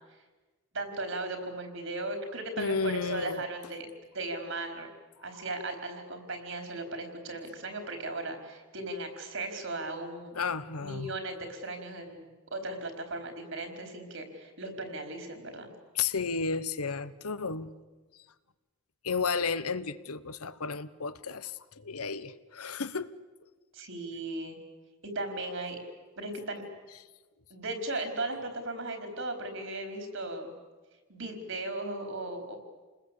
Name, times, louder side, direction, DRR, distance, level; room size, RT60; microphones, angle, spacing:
voice 1, 0.7-3.9 4.1-4.9 5.2-10.4 10.8-15.7 23.7-24.6 25.0-25.8 26.2-26.6 27.5-30.5 31.1-32.6, right 2 dB, 60° right, 5 dB, 4.4 m, -37 dB
voice 2, 2.6-3.4 5.3-5.4 10.3-11.1 15.9-17.7 19.0-23.1, left 5 dB, 85° left, 14 dB, 1.1 m, -33 dB
29.0 x 20.5 x 8.5 m, 1.3 s
head